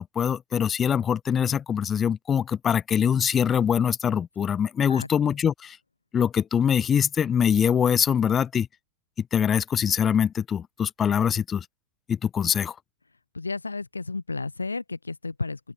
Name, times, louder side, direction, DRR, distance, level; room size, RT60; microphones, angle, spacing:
voice 1, 0.0-5.8 6.1-8.7 9.3-11.6 12.1-12.7, left 8 dB, 25° left, 0.9 m, -23 dB
voice 2, 13.3-15.7, left 3 dB, 80° left, 8.0 m, -33 dB
open air
figure-of-eight pair, 90°, 0 cm